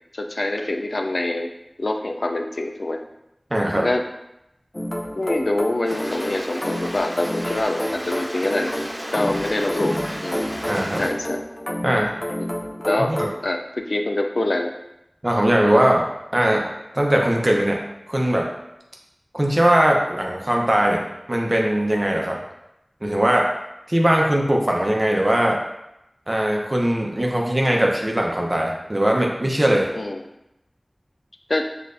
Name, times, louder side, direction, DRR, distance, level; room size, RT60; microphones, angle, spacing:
voice 1, 0.1-1.5 1.8-3.0 3.8-4.0 5.2-8.7 9.1-10.4 11.0-11.4 12.4-12.5 12.8-13.1 13.4-14.7 29.9-30.2 31.5-31.7, left 2 dB, 80° left, 4 dB, 0.4 m, -25 dB
voice 2, 3.5-3.9 10.7-11.0 11.8-12.1 13.0-13.3 15.2-16.0 16.3-16.6 16.9-17.8 18.1-18.5 19.3-21.0 21.3-22.4 23.0-23.5 23.9-25.6 26.3-29.9, right 1 dB, 35° right, 0 dB, 0.8 m, -20 dB
sound 1, 4.7-13.4, equal, 30° left, 0.5 m, -29 dB
Stream, 5.8-11.1, equal, 90° right, 1.3 m, -34 dB
6.5 x 2.5 x 2.6 m, 0.86 s
wide cardioid pair, 45°, 0 cm